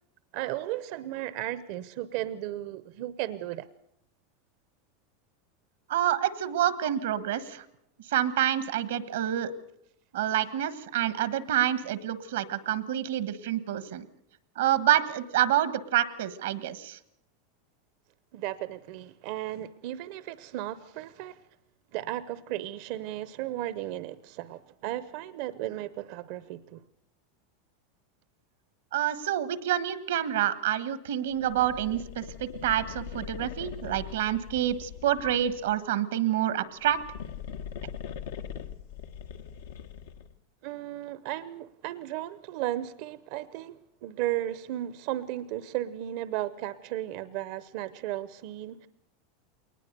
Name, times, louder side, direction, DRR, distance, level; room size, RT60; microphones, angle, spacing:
voice 1, 0.3-3.7 18.3-21.4 21.9-26.8 40.6-48.9, right 14 dB, 60° right, 0.7 m, -35 dB
voice 2, 5.9-7.6 8.1-9.5 10.1-14.0 14.6-17.0 28.9-37.0, right 11 dB, 85° right, 1.4 m, -27 dB
sound 1, 31.3-35.8 36.7-40.4, left 8 dB, 85° left, 1.3 m, -41 dB
21.5 x 19.5 x 6.8 m
supercardioid pair, 125°, 0 cm